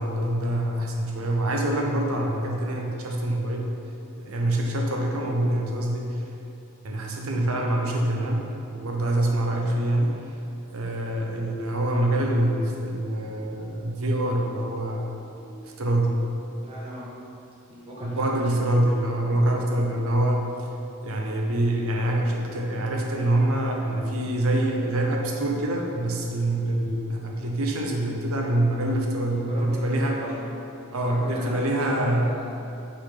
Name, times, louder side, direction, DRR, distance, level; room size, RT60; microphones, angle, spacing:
voice 1, 0.0-3.7 4.2-6.2 6.8-10.1 10.7-16.2 18.0-20.5 21.0-30.2 30.9-32.3, right 1 dB, 85° right, 0 dB, 0.9 m, -25 dB
voice 2, 16.6-17.1 17.7-18.4 29.2-30.4 31.0-32.5, equal, 25° right, -6 dB, 1.4 m, -38 dB
5.8 x 4.1 x 5.8 m, 2.7 s
head